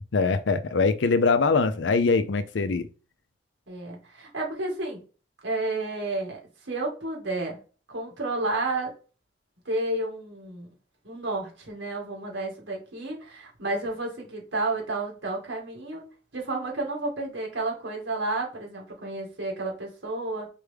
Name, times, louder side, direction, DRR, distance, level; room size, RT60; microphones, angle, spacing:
voice 1, 0.1-2.9, left 4 dB, 75° left, 0.5 m, -22 dB
voice 2, 3.7-5.0 5.4-6.4 6.7-7.6 7.9-8.9 9.7-10.7 11.0-16.0 16.3-20.5, right 2 dB, 85° right, 2.2 m, -31 dB
4.5 x 3.4 x 3.4 m
head